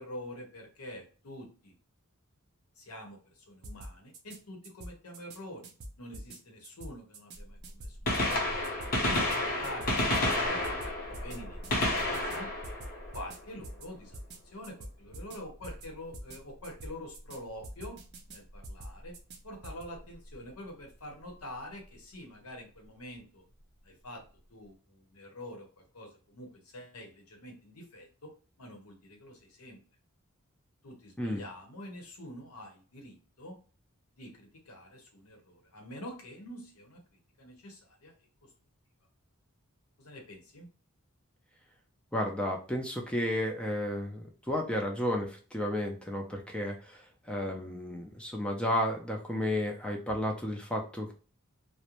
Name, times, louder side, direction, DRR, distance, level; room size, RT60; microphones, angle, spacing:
voice 1, 0.0-1.7 2.8-5.7 6.0-8.6 9.0-12.5 13.1-14.2 14.4-18.0 18.3-19.2 19.4-23.4 23.8-24.2 24.5-28.3 28.6-29.8 30.8-33.6 34.1-37.0 37.4-38.1 40.0-40.7, left 1 dB, 80° left, 1 dB, 0.8 m, -46 dB
sound 1, 3.6-4.4 4.6-5.4 5.6-6.4 6.6-7.4 7.6-8.4 8.6-9.4 9.6-10.4 10.6-11.4 11.6-12.4 12.6-13.4 13.6-13.9 14.1-14.4 14.6-15.4 15.6-15.9 16.1-16.4 16.6-17.4 17.6-18.4 18.6-19.4 19.6-19.8, right 1 dB, 50° right, 0.5 m, -45 dB
Gunshot gunfire, 7.9-13.8 15.7-15.9 16.9-17.0 18.6-18.7 20.0-20.1 20.3-20.4, left 1 dB, 40° left, 0.8 m, -31 dB
voice 2, 42.1-47.0 47.3-51.1, left 1 dB, 5° left, 1 dB, 0.4 m, -32 dB
2.5 x 2.1 x 2.9 m, 0.38 s
head